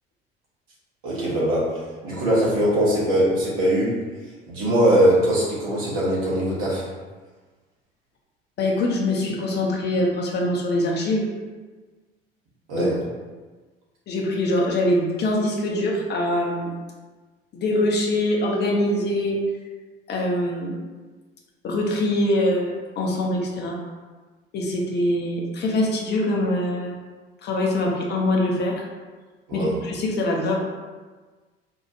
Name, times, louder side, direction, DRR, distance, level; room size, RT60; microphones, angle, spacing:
voice 1, 1.0-3.9 4.5-6.9 12.7-12.9 29.5-29.7, right 1 dB, 60° right, -6 dB, 1.3 m, -21 dB
voice 2, 8.6-11.3 12.7-12.8 14.1-16.7 17.5-19.4 20.1-20.7 21.6-23.8 24.5-26.9 27.4-28.8 29.5-30.6, left 1 dB, 35° left, -1 dB, 0.7 m, -23 dB
4.4 x 2.3 x 2.9 m, 1.3 s
figure-of-eight pair, 60°, 30 cm